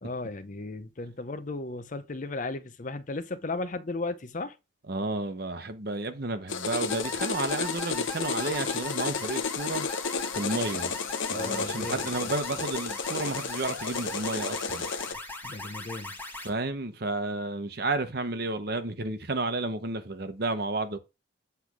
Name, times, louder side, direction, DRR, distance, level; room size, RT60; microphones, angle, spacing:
voice 1, 0.0-4.6 11.3-12.3 15.4-16.2, left 2 dB, 40° left, 0.6 m, -35 dB
voice 2, 4.9-9.9 10.3-11.0 11.3-14.9 16.4-21.0, right 2 dB, 50° right, 0.9 m, -32 dB
sound 1, 6.5-15.1, left 5 dB, 75° left, 0.8 m, -32 dB
sound 2, 6.9-16.5, left 2 dB, 10° left, 1.5 m, -40 dB
8.3 x 3.4 x 6.0 m
head